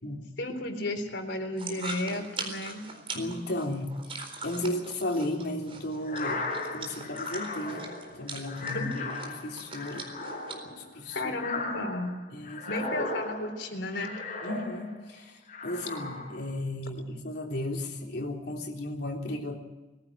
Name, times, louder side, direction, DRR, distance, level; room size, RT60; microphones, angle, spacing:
voice 1, 0.4-2.8 8.7-9.1 11.2-12.1 12.7-14.1, left 1 dB, 85° left, 6 dB, 3.7 m, -33 dB
sound 1, 1.6-10.6, right 4 dB, 30° right, 4.1 m, -42 dB
voice 2, 3.1-8.9 9.2-10.1 10.8-11.3 12.3-13.1 14.4-19.6, left 1 dB, 65° left, 1 dB, 3.5 m, -35 dB
sound 2, 6.0-15.1 15.5-16.5, left 3 dB, 45° left, 5.1 m, -37 dB
21.5 x 15.5 x 8.6 m, 1.1 s
head